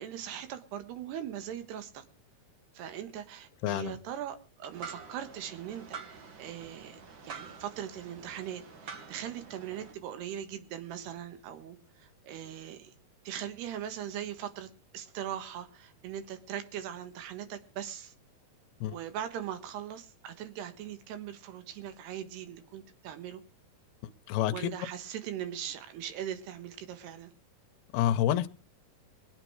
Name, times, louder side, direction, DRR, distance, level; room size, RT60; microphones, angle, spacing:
voice 1, 0.0-2.0 2.8-12.9 13.3-18.1 18.9-23.4 24.5-27.3, right 10 dB, 85° right, 9 dB, 3.5 m, -40 dB
voice 2, 3.6-4.0 18.8-18.9 24.3-24.7 27.9-28.5, left 11 dB, 80° left, 8 dB, 2.7 m, -28 dB
sound 1, 4.7-9.9, right 5 dB, 55° right, 1.4 m, -47 dB
24.0 x 9.0 x 4.7 m, 0.35 s
omnidirectional pair, 4.6 m